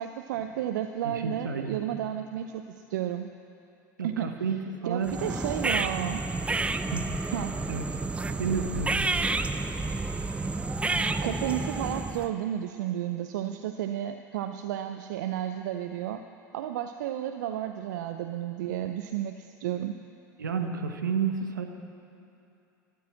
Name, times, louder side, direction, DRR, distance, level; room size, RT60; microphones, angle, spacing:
voice 1, 0.0-3.3 4.0-4.3 4.9-6.2 7.3-7.6 11.2-16.2 16.5-19.9, right 11 dB, 70° right, 8 dB, 0.6 m, -32 dB
voice 2, 1.0-1.9 4.0-4.6 4.8-5.2 6.9-7.1 7.7-7.8 8.4-8.9 20.4-21.7, right 6 dB, 85° right, 5 dB, 1.2 m, -30 dB
sound 1, 5.0-12.3, right 3 dB, 10° right, 0.6 m, -30 dB
13.0 x 12.0 x 7.5 m, 2.7 s
hypercardioid pair, 80°, 10 cm